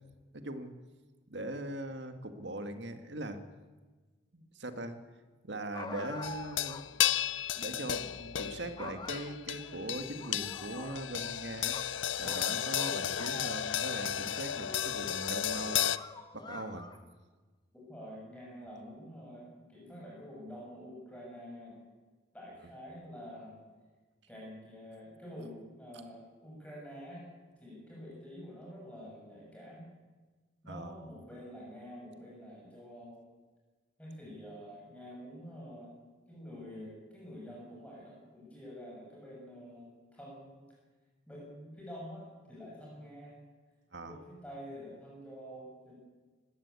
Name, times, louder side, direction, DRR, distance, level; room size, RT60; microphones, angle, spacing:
voice 1, 0.3-0.7 1.3-3.4 4.3-5.0 5.4-6.9 7.5-11.8 12.2-15.9 16.3-16.9 30.7-31.0 43.9-44.2, right 1 dB, 65° right, 8 dB, 1.9 m, -40 dB
yowl a dog, 5.7-6.9 7.2-7.3 8.2-8.4 8.8-9.8 10.2-11.4 11.7-13.9 14.5-15.3 15.8-17.1, left 3 dB, 20° left, 1.3 m, -46 dB
sound 1, 6.2-16.0, left 11 dB, 75° left, 0.5 m, -34 dB
voice 2, 17.7-21.8 22.3-23.6 24.3-27.3 27.6-29.9 30.6-33.2 34.0-35.9 36.3-40.7 41.3-43.3 44.0-45.9, equal, 5° left, -4 dB, 6.4 m, -47 dB
20.0 x 16.5 x 8.4 m, 1.3 s
head